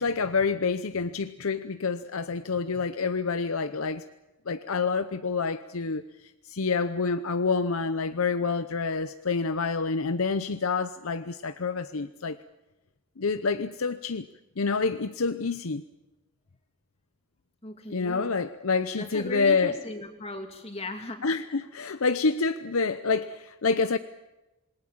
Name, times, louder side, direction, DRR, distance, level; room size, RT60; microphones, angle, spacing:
voice 1, 0.0-4.0 4.5-6.0 6.5-12.4 13.2-14.3 14.6-15.8 17.9-19.8 21.2-24.0, left 4 dB, 80° left, 10 dB, 0.8 m, -27 dB
voice 2, 17.6-18.4 18.9-21.2, left 1 dB, 30° left, 4 dB, 2.8 m, -37 dB
27.5 x 21.0 x 7.3 m, 1.0 s
head